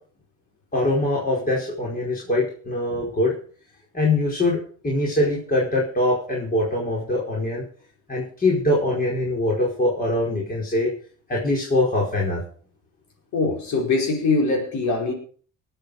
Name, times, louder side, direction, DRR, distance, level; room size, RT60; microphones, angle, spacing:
voice 1, 0.7-3.3 3.9-4.6 4.8-7.6 8.1-10.9 11.3-12.4, left 1 dB, 25° left, -3 dB, 4.8 m, -23 dB
voice 2, 13.3-15.1, left 3 dB, 60° left, 0 dB, 4.9 m, -22 dB
20.0 x 8.0 x 5.0 m, 0.44 s
cardioid pair, 115°, 33 cm